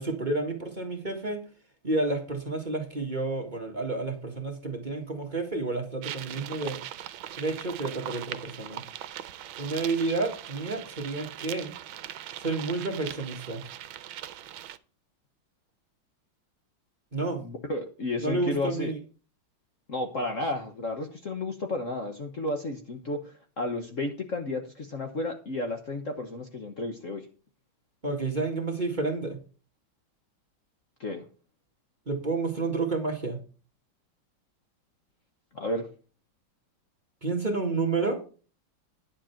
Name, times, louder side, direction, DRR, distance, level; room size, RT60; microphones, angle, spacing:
voice 1, 0.0-1.4 1.8-6.8 7.4-8.8 9.6-11.7 12.4-13.6 17.1-17.4 18.2-19.0 28.0-29.4 32.1-33.4 37.2-38.2, right 3 dB, 25° right, 2 dB, 1.6 m, -30 dB
sound 1, 6.0-14.8, right 12 dB, 80° right, 1.4 m, -40 dB
voice 2, 17.3-18.9 19.9-27.2 31.0-31.2 35.5-35.9, left 2 dB, 45° left, 4 dB, 1.3 m, -32 dB
10.5 x 7.5 x 4.4 m, 0.37 s
omnidirectional pair, 2.2 m